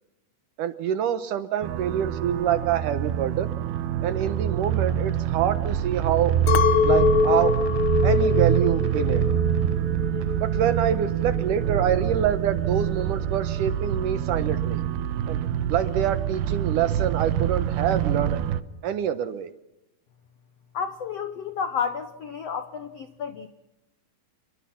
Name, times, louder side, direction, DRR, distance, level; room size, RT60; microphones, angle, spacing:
voice 1, 0.6-3.5 4.0-6.3 6.8-7.6 8.0-9.2 10.4-14.8 15.3-15.4 15.7-18.4 18.8-19.5, right 9 dB, 70° right, 11 dB, 2.2 m, -26 dB
sound 1, 1.6-18.6, right 10 dB, 85° right, 3.0 m, -26 dB
Chink clink, 6.5-10.9 11.2-11.8, left 6 dB, 90° left, 1.1 m, -24 dB
voice 2, 20.7-23.5, left 6 dB, 75° left, 10 dB, 1.5 m, -31 dB
28.5 x 23.5 x 5.8 m, 0.93 s
omnidirectional pair, 4.5 m